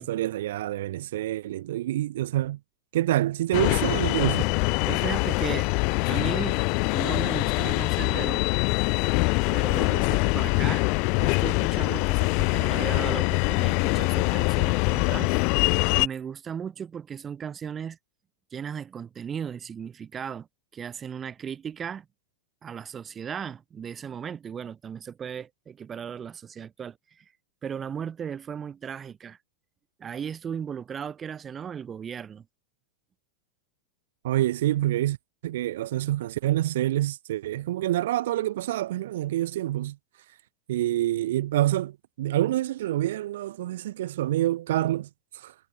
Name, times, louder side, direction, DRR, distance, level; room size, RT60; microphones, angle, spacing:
voice 1, 0.0-2.6 2.9-4.4 34.2-35.2 35.4-40.0 40.7-45.5, right 14 dB, 70° right, 2.4 m, -27 dB
sound 1, 3.5-16.1, left 33 dB, 45° left, 4.5 m, -24 dB
voice 2, 4.9-5.7 6.1-6.6 6.9-8.5 9.5-10.8 11.2-15.3 15.9-18.0 18.5-20.5 20.7-22.0 22.6-27.2 27.6-29.4 30.0-32.4, right 7 dB, 20° right, 5.0 m, -36 dB
supercardioid pair, 155°, 0 cm